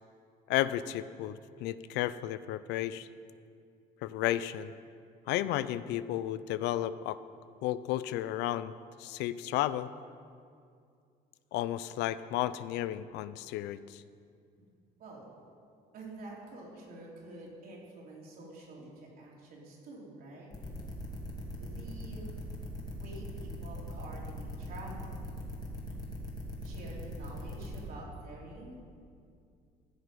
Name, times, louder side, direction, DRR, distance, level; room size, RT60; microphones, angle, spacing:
voice 1, 0.5-3.1 4.0-4.7 5.3-7.2 7.6-8.7 9.0-9.9 11.5-14.0, left 13 dB, 85° left, 15 dB, 0.4 m, -33 dB
voice 2, 15.9-20.5 21.6-22.3 22.9-25.3 25.9-26.0 26.6-28.8, right 2 dB, 60° right, -3 dB, 3.3 m, -48 dB
sound 1, 20.5-27.8, left 1 dB, 25° left, 2.4 m, -40 dB
15.5 x 6.5 x 5.3 m, 2.3 s
cardioid pair, 110°, 17 cm